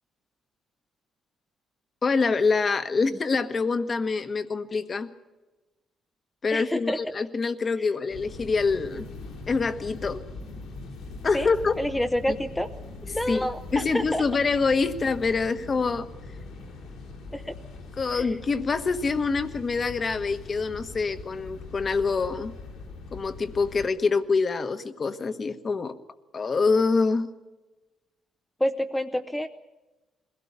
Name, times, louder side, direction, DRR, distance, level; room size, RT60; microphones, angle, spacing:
voice 1, 2.0-5.1 6.4-9.1 9.5-10.2 11.2-11.7 13.3-16.1 18.0-22.5 23.1-25.9 26.3-27.3, left 4 dB, 40° left, 11 dB, 1.3 m, -25 dB
voice 2, 6.5-7.0 11.3-11.5 11.8-12.7 13.0-14.2 17.3-17.6 18.1-18.3 28.6-29.5, left 1 dB, 10° left, 7 dB, 0.8 m, -28 dB
sound 1, 8.1-23.9, left 3 dB, 85° left, 4.3 m, -41 dB
21.5 x 17.0 x 8.3 m, 1.2 s
cardioid pair, 90°, 0 cm